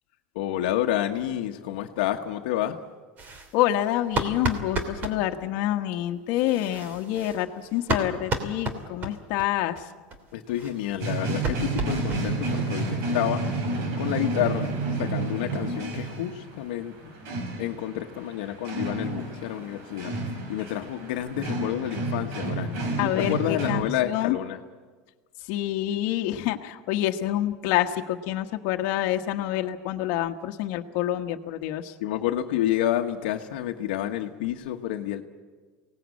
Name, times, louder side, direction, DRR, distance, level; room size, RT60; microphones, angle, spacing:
voice 1, 0.3-2.8 10.3-13.4 14.0-14.7 15.0-17.1 17.6-20.1 20.5-24.6 32.0-35.2, left 12 dB, 80° left, 4 dB, 1.3 m, -29 dB
sound 1, 3.2-5.2 6.4-9.5 9.8-9.9 10.1-10.2 10.5-12.5 12.8-12.9 13.2-13.3 13.7-13.8 14.0-14.8, right 3 dB, 35° right, 2.9 m, -33 dB
voice 2, 3.5-9.9 23.0-24.4 25.4-31.9, left 13 dB, 65° left, 4 dB, 1.4 m, -27 dB
sound 2, 11.0-23.8, right 2 dB, 60° right, 4.3 m, -31 dB
24.0 x 18.0 x 8.5 m, 1.4 s
supercardioid pair, 125°, 5 cm